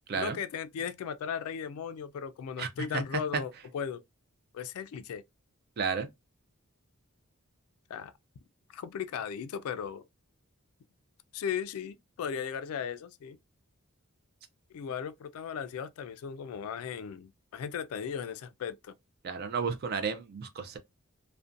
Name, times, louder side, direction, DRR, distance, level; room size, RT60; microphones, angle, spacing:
voice 1, 0.2-4.0 4.5-5.2 7.9-8.1 8.7-10.0 11.3-13.4 14.7-18.9, left 7 dB, 75° left, 0.3 m, -37 dB
voice 2, 5.8-6.1 19.2-20.8, right 5 dB, 45° right, 0.3 m, -32 dB
2.5 x 2.1 x 2.4 m
head